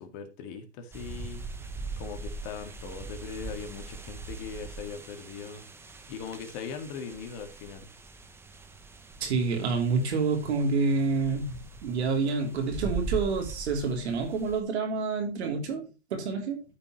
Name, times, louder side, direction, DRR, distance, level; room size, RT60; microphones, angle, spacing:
voice 1, 0.0-1.5 2.0-5.6 6.1-7.9, left 6 dB, 40° left, 2.0 m, -40 dB
sound 1, 0.9-14.6, right 3 dB, 5° right, 0.8 m, -41 dB
voice 2, 9.2-16.6, right 4 dB, 70° right, 3.2 m, -28 dB
13.0 x 5.6 x 3.1 m
hypercardioid pair, 130°, 34 cm